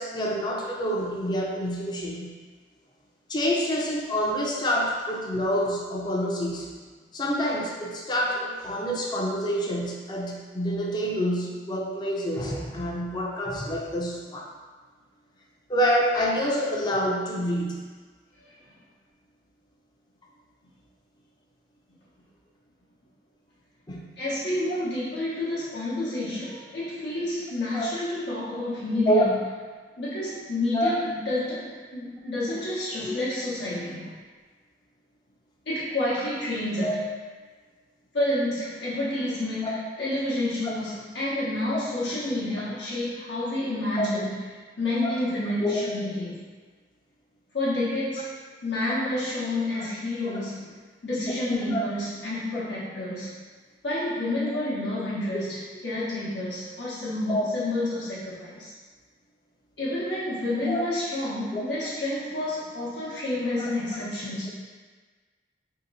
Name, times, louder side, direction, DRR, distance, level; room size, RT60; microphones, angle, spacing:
voice 1, 0.0-2.3 3.3-6.7 7.1-14.5 15.7-17.8 23.9-24.1 27.7-27.9 29.1-29.3 30.7-30.9 33.0-33.1 36.8-37.0 39.6-39.8 40.6-40.7 43.9-44.1 45.0-45.1 45.6-46.2 51.7-51.8 57.3-57.5 60.7-60.8 61.5-61.6 63.6-63.7, equal, 25° left, -2 dB, 0.4 m, -27 dB
voice 2, 24.2-29.3 30.0-34.1 35.7-37.0 38.1-44.4 44.8-46.4 47.5-48.3 48.6-50.7 51.0-53.3 53.8-58.7 59.8-64.5, left 1 dB, 80° left, -9 dB, 0.8 m, -29 dB
2.9 x 2.8 x 4.0 m, 1.4 s
head